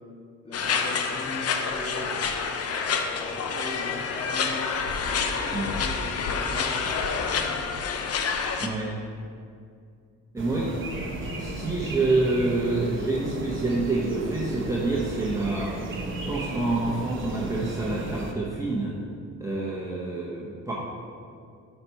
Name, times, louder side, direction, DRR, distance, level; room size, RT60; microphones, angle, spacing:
voice 1, 0.4-2.3 3.1-4.7 5.0-6.8 7.2-7.7, left 1 dB, 20° left, -3 dB, 1.7 m, -39 dB
sound 1, 0.5-8.7, left 5 dB, 50° left, 0.6 m, -28 dB
voice 2, 8.6-8.9 10.3-10.7 11.2-15.7 16.3-18.9 19.4-20.7, right 2 dB, 10° right, -5 dB, 0.9 m, -27 dB
sound 2, 10.4-18.3, right 2 dB, 40° right, 1.0 m, -35 dB
5.7 x 5.5 x 4.6 m, 2.3 s
cardioid pair, 90°, 30 cm